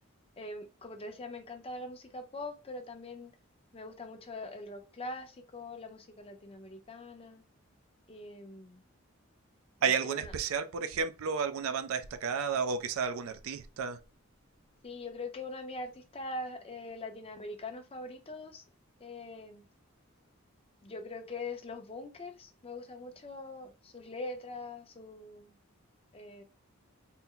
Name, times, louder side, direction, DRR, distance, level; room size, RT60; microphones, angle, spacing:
voice 1, 0.4-3.3 3.7-7.4 8.1-8.8 9.8-10.4 14.8-18.6 19.0-19.7 20.8-25.6 26.1-26.4, left 2 dB, 30° left, 0.6 m, -43 dB
voice 2, 9.8-14.0, right 6 dB, 85° right, 0.4 m, -32 dB
4.1 x 2.0 x 3.7 m
head